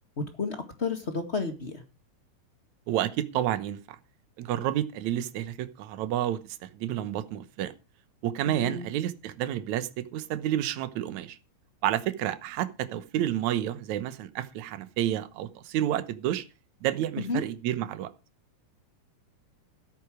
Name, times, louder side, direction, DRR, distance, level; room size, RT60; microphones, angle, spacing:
voice 1, 0.4-1.8 8.5-8.9 17.2-17.4, left 4 dB, 40° left, 0.9 m, -31 dB
voice 2, 2.9-3.8 4.4-7.7 8.2-11.4 11.8-16.4 16.8-18.1, right 12 dB, 65° right, 1.9 m, -30 dB
13.0 x 9.9 x 4.8 m
omnidirectional pair, 4.6 m